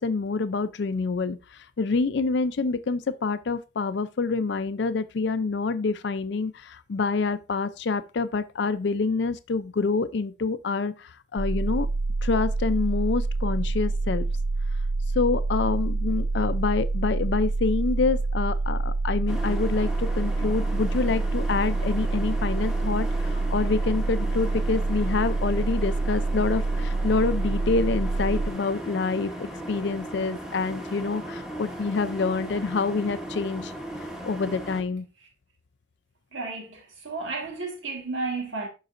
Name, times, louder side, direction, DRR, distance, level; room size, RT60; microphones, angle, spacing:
voice 1, 0.0-11.9 12.2-14.3 15.2-33.7 34.2-35.1, left 4 dB, 65° left, 0.4 m, -27 dB
sound 1, 11.4-28.5, right 3 dB, 55° right, 0.4 m, -26 dB
sound 2, 19.3-34.8, right 1 dB, 5° right, 1.0 m, -37 dB
voice 2, 36.3-38.7, right 3 dB, 85° right, 1.6 m, -32 dB
11.5 x 4.0 x 2.5 m
head